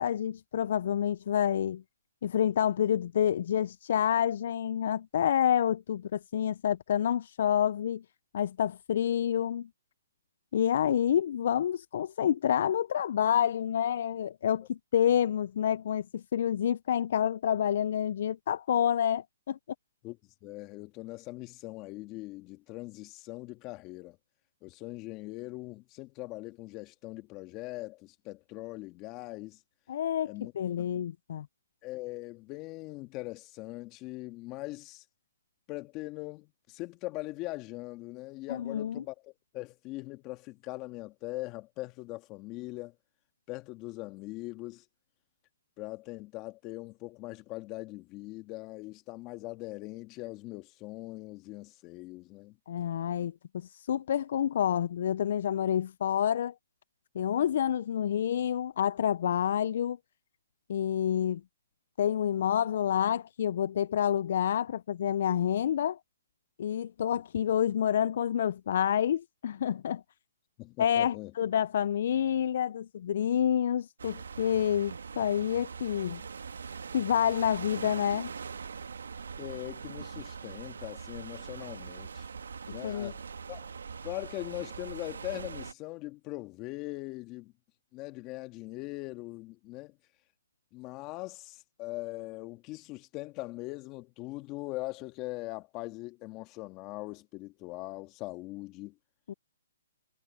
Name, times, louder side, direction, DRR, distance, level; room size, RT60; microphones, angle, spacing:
voice 1, 0.0-1.8 2.2-8.0 8.3-9.7 10.5-19.6 29.9-31.5 38.5-39.0 52.7-56.5 57.1-60.0 60.7-61.4 62.0-66.0 66.6-70.0 70.8-76.2 76.9-78.3 82.8-83.1 99.3-99.4, left 9 dB, 55° left, 0.3 m, -28 dB
voice 2, 20.0-24.2 24.6-29.6 30.2-30.5 30.8-30.9 31.8-35.0 35.7-42.9 43.5-44.8 45.8-52.6 53.2-53.3 67.1-67.2 70.6-71.3 79.4-82.3 82.7-83.7 84.0-87.5 87.9-90.0 90.7-98.9, left 20 dB, 25° left, 1.6 m, -41 dB
sound 1, 74.0-85.7, right 5 dB, 80° right, 1.4 m, -42 dB
hypercardioid pair, 150°, 0 cm